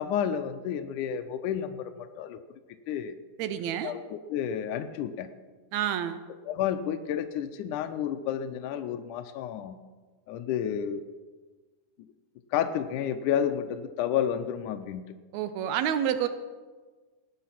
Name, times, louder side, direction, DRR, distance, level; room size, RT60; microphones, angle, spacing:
voice 1, 0.0-2.4 2.9-3.1 3.8-5.3 6.5-9.8 10.3-11.1 12.5-15.0, left 9 dB, 75° left, 7 dB, 1.9 m, -30 dB
voice 2, 3.4-3.9 5.7-6.2 15.3-16.3, right 9 dB, 85° right, 10 dB, 1.6 m, -28 dB
19.5 x 8.6 x 5.8 m, 1.4 s
omnidirectional pair, 4.1 m